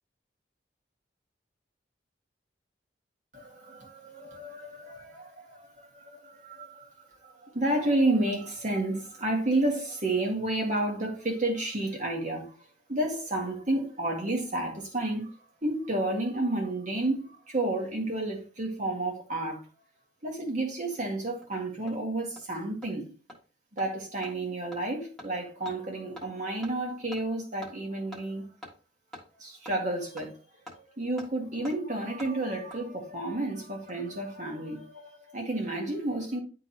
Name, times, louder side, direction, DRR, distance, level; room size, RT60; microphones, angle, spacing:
voice 1, 3.3-12.6 12.9-15.3 15.6-19.6 20.2-23.1 23.7-28.5 29.4-30.4 30.7-36.4, right 2 dB, 45° right, 1.8 m, -31 dB
Hammer, 20.9-21.0 21.4-21.5 21.9-22.0 22.4-22.5 22.8-22.9 23.3-23.4 23.8-23.9 24.2-24.3 24.7-24.8 25.2-25.3 25.6-25.8 26.2-26.3 26.6-26.7 27.1-27.2 27.6-27.7 28.1-28.2 28.6-28.7 29.1-29.2 29.6-29.8 30.2-30.3 30.7-30.8 31.2-31.3 31.6-31.8 32.2-32.3 32.7-32.8 33.7-34.1 34.4-34.5, left 1 dB, ahead, 1.5 m, -45 dB
10.5 x 3.7 x 2.8 m
head